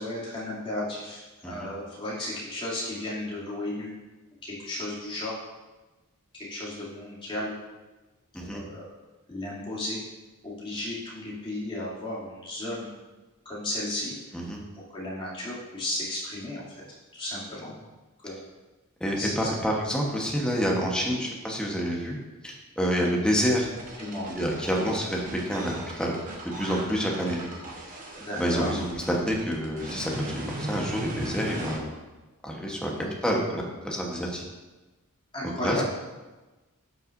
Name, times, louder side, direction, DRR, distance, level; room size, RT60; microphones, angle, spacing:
voice 1, 0.0-4.0 4.4-5.4 6.5-7.5 8.3-8.9 9.3-10.0 10.4-12.9 13.4-14.4 14.7-16.8 17.1-17.7 18.2-18.4 19.2-19.7 21.2-21.3 24.0-24.3 24.6-24.9 28.2-28.7 32.9-33.1 35.3-35.8, left 1 dB, 25° left, -8 dB, 2.7 m, -34 dB
voice 2, 19.0-22.2 22.4-23.7 24.3-26.1 26.6-27.4 28.4-32.0 32.4-32.9 33.2-34.4 35.6-35.9, equal, 5° left, -2 dB, 1.1 m, -28 dB
sound 1, 23.8-31.8, right 1 dB, 40° right, 1.2 m, -37 dB
11.5 x 5.7 x 2.6 m, 1.2 s
head